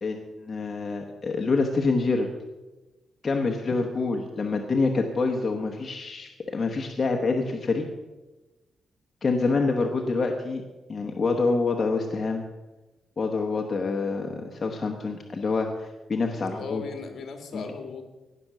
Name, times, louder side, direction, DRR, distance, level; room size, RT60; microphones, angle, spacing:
voice 1, 0.0-2.3 3.2-7.8 9.2-10.6 10.9-12.4 13.2-16.8 17.5-17.6, left 3 dB, 30° left, 1 dB, 1.1 m, -26 dB
voice 2, 9.3-9.6 16.4-18.1, left 5 dB, 55° left, 5 dB, 1.9 m, -38 dB
17.5 x 6.0 x 6.6 m, 1.1 s
cardioid pair, 140°, 0 cm